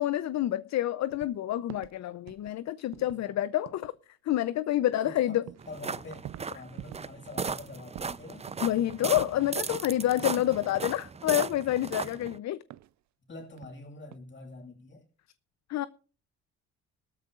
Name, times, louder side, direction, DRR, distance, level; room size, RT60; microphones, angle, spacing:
voice 1, 0.0-3.9 4.2-5.4 8.6-12.6 15.7-15.9, left 13 dB, 65° left, 0.6 m, -28 dB
sound 1, 1.1-1.4 1.7-2.0 2.3-2.6 2.9-3.2 3.7-4.0 5.0-5.1 5.5-5.8 6.0-7.1 7.4-7.7 8.0-9.5 9.7-10.0 10.3-10.4 11.5-12.2 12.7-12.9 13.4-13.8 14.0-14.2, right 13 dB, 65° right, 0.6 m, -47 dB
voice 2, 3.0-3.3 5.0-8.5 10.2-10.5 13.3-15.0, left 2 dB, 40° left, 6.3 m, -46 dB
sound 2, 5.6-12.4, right 5 dB, 20° right, 0.6 m, -37 dB
18.0 x 13.5 x 2.5 m
cardioid pair, 90°, 30 cm